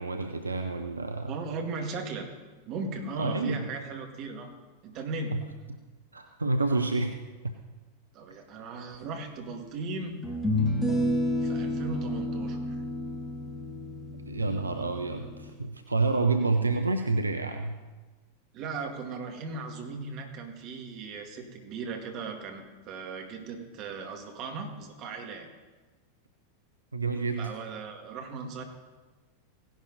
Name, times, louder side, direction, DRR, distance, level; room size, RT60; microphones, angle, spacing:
voice 1, 0.0-1.4 3.2-3.6 5.3-5.4 6.1-7.2 14.1-17.8 26.9-27.6, right 3 dB, 80° right, 6 dB, 0.8 m, -28 dB
voice 2, 1.3-2.3 2.7-4.5 4.8-5.4 8.1-10.2 11.4-12.8 18.5-25.5 27.4-28.6, right 4 dB, 40° right, 3 dB, 2.3 m, -37 dB
sound 1, 9.1-9.2 10.2-15.5, left 1 dB, 10° left, 1.8 m, -30 dB
16.5 x 11.0 x 4.2 m, 1.3 s
figure-of-eight pair, 90°, 0 cm